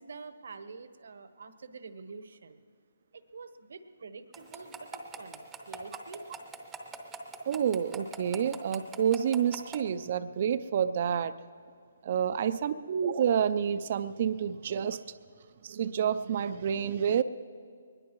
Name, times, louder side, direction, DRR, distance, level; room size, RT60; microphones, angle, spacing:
voice 1, 0.0-2.6 3.1-6.2, right 4 dB, 70° right, 11 dB, 1.0 m, -47 dB
sound 1, 4.3-9.8, right 6 dB, 10° right, 0.8 m, -42 dB
voice 2, 7.5-11.3 12.0-15.0 15.6-17.2, right 8 dB, 40° right, 13 dB, 0.5 m, -28 dB
22.5 x 20.5 x 3.1 m, 2.2 s
hypercardioid pair, 160°, 0 cm